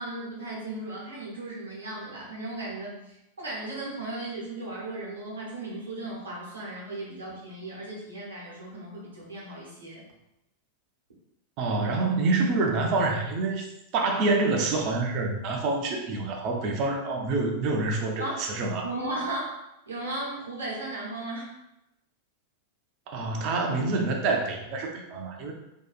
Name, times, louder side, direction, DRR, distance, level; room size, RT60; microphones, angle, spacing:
voice 1, 0.0-10.0 18.2-18.5 18.8-21.5, right 2 dB, 75° right, -5 dB, 0.9 m, -36 dB
voice 2, 11.6-18.9 23.1-25.5, right 3 dB, 40° right, 1 dB, 0.5 m, -27 dB
2.7 x 2.3 x 2.3 m, 0.89 s
figure-of-eight pair, 90°, 0 cm